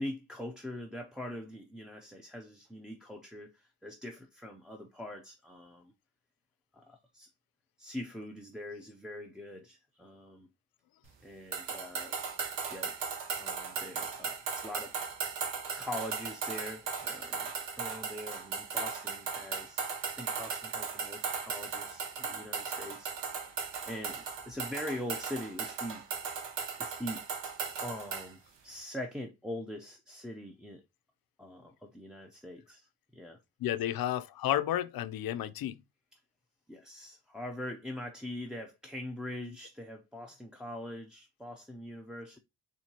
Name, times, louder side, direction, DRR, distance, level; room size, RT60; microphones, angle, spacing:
voice 1, 0.0-5.9 6.7-7.3 7.8-10.5 11.2-12.2 12.7-13.0 13.3-14.9 15.8-17.5 17.8-19.8 20.1-26.0 26.8-27.2 27.8-30.8 31.4-33.4 36.1-36.2 36.7-42.4, left 1 dB, ahead, 0.4 m, -43 dB
sound 1, 11.5-28.3, right 6 dB, 85° right, 0.9 m, -37 dB
voice 2, 33.6-35.8, left 12 dB, 55° left, 0.5 m, -31 dB
4.4 x 2.8 x 2.8 m
cardioid pair, 90°, 43 cm